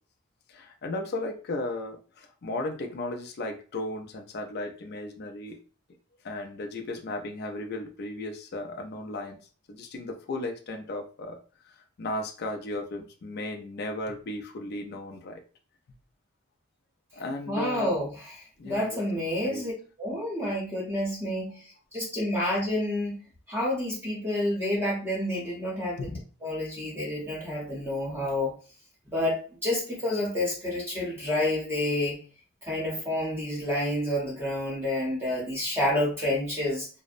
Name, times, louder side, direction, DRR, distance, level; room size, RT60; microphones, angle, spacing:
voice 1, 0.5-5.6 6.2-9.4 9.7-11.4 11.7-15.4 17.1-17.9 18.6-19.7 26.0-26.2, left 2 dB, 45° left, 5 dB, 0.4 m, -35 dB
voice 2, 17.5-18.4 18.6-19.7 20.0-23.2 23.5-26.1 26.4-28.6 29.1-32.2 32.6-36.9, left 1 dB, 10° right, -4 dB, 0.7 m, -29 dB
2.6 x 2.0 x 2.4 m, 0.38 s
head